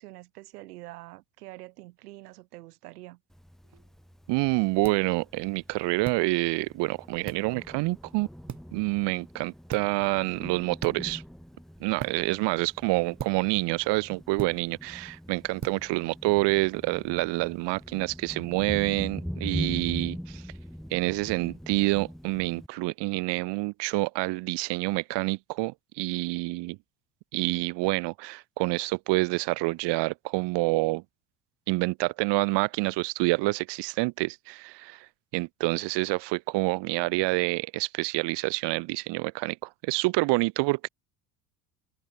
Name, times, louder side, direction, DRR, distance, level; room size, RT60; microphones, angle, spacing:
voice 1, 0.0-3.2, right 19 dB, 85° right, 7.5 m, -46 dB
Thunder, 3.3-22.7, equal, ahead, 7.6 m, -42 dB
sound 1, 3.6-17.1, right 7 dB, 40° right, 7.0 m, -45 dB
voice 2, 4.3-8.3 8.7-11.2 11.8-20.4 20.9-26.8 27.3-31.0 31.7-35.1 35.3-40.9, right 24 dB, 65° right, 1.3 m, -27 dB
hypercardioid pair, 75°, 45 cm